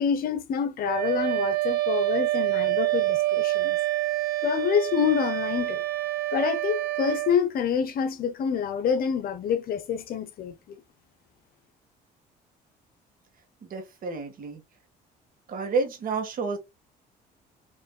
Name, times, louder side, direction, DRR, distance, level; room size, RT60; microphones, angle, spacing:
voice 1, 0.0-3.8 4.4-5.8 6.3-10.8, left 7 dB, 60° left, 1.0 m, -27 dB
Wind instrument woodwind instrument, 0.8-7.4, right 17 dB, 75° right, 1.1 m, -27 dB
voice 2, 13.6-14.6 15.5-16.6, right 4 dB, 55° right, 1.7 m, -30 dB
6.6 x 3.2 x 2.3 m
cardioid pair, 110°, 17 cm